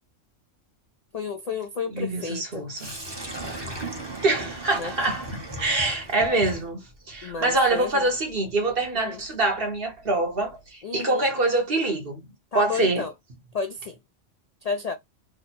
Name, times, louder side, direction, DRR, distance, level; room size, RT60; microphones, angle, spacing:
voice 1, 1.1-2.7 4.7-4.9 7.2-8.0 8.9-9.2 10.8-11.3 12.5-13.1 13.5-14.0 14.6-15.0, left 4 dB, 60° left, 0.4 m, -31 dB
voice 2, 1.9-2.9 4.2-12.2 12.5-13.0, right 2 dB, 50° right, 1.2 m, -25 dB
Sink (filling or washing), 2.8-10.7, right 1 dB, 20° right, 1.0 m, -39 dB
3.4 x 2.2 x 4.2 m
omnidirectional pair, 1.3 m